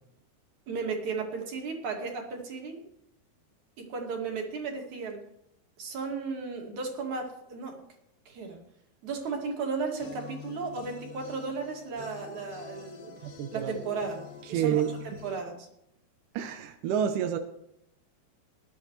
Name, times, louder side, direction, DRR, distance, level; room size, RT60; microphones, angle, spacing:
voice 1, 0.7-2.8 3.8-5.2 5.8-7.8 8.3-8.6 9.0-13.1 13.5-14.2 14.5-15.7, right 4 dB, 55° right, 1 dB, 3.4 m, -35 dB
sound 1, 10.0-15.4, left 8 dB, 85° left, 3.5 m, -46 dB
voice 2, 13.2-13.7 14.5-14.9 16.3-17.4, right 9 dB, 75° right, 7 dB, 1.9 m, -28 dB
20.0 x 11.5 x 3.2 m, 0.78 s
omnidirectional pair, 4.6 m